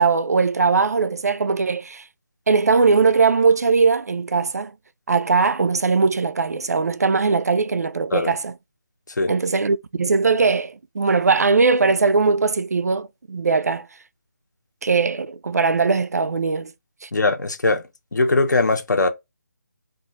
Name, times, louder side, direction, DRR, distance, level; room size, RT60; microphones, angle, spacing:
voice 1, 0.0-2.0 2.5-4.7 5.1-8.5 9.3-13.9 14.8-16.7 17.0-17.1, right 4 dB, 60° right, 0.3 m, -20 dB
voice 2, 17.1-17.8 18.1-19.1, left 3 dB, 75° left, 0.9 m, -20 dB
2.4 x 2.4 x 3.8 m
hypercardioid pair, 180°, 10 cm